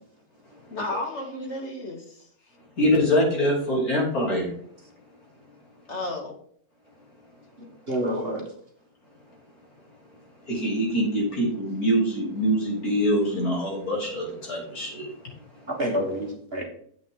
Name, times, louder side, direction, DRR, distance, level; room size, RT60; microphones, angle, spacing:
voice 1, 0.7-2.3 5.9-6.4, left 2 dB, 45° left, 2 dB, 2.1 m, -33 dB
voice 2, 2.8-4.5 10.5-15.2 15.6-15.7, equal, 65° left, -2 dB, 3.8 m, -24 dB
voice 3, 7.9-8.4 15.7-16.6, equal, 40° right, 1 dB, 1.6 m, -28 dB
10.0 x 7.9 x 3.8 m, 0.63 s
omnidirectional pair, 1.7 m